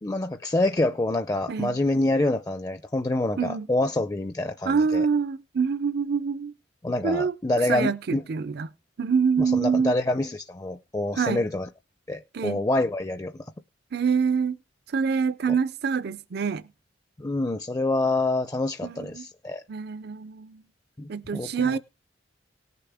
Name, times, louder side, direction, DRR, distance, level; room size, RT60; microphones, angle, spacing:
voice 1, 0.0-5.1 6.8-8.2 9.4-11.7 12.1-13.3 17.2-19.6 21.0-21.8, left 2 dB, 20° left, 0.5 m, -26 dB
voice 2, 1.5-1.8 3.4-3.7 4.6-6.5 7.0-8.7 9.0-9.9 11.2-11.5 12.3-12.6 13.9-14.6 14.9-16.6 18.8-19.2 19.7-20.6 21.1-21.8, right 5 dB, 55° right, 0.5 m, -26 dB
18.5 x 6.8 x 3.5 m
head